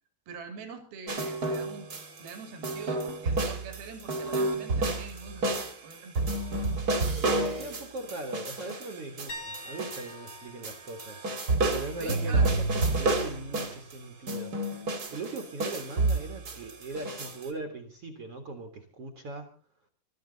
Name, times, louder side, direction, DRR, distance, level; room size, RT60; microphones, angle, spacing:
voice 1, 0.3-1.9 2.2-6.3 7.1-7.8 12.0-12.5, right 5 dB, 80° right, 6 dB, 4.4 m, -44 dB
sound 1, 1.1-2.3 2.6-10.4 10.6-13.9 14.3-17.4, right 2 dB, 30° right, 2.1 m, -30 dB
voice 2, 7.1-11.2 11.7-12.6 12.9-14.8 15.1-19.5, right 2 dB, 45° right, 5 dB, 2.3 m, -40 dB
sound 2, 9.3-13.0 13.4-13.7 16.6-16.7, left 1 dB, 45° left, 3.3 m, -47 dB
24.0 x 13.0 x 4.0 m, 0.39 s
omnidirectional pair, 4.3 m